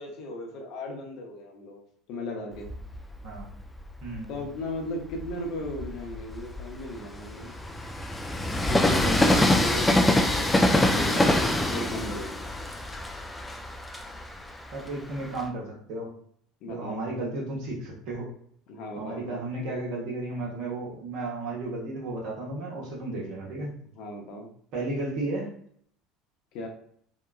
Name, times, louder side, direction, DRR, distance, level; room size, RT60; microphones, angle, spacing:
voice 1, 0.0-1.8 2.1-2.7 4.3-7.5 8.7-12.3 16.6-17.1 18.7-19.5 23.9-24.5 26.5-26.7, left 1 dB, 60° left, 1 dB, 0.7 m, -36 dB
Train, 2.6-4.3 4.9-15.5, left 1 dB, 10° left, 0.4 m, -26 dB
voice 2, 4.0-4.3 10.9-11.3 14.7-16.1 16.7-18.3 19.0-23.8 24.7-25.5, right 2 dB, 60° right, -3 dB, 1.1 m, -34 dB
2.9 x 2.2 x 2.3 m, 0.63 s
hypercardioid pair, 70°, 0 cm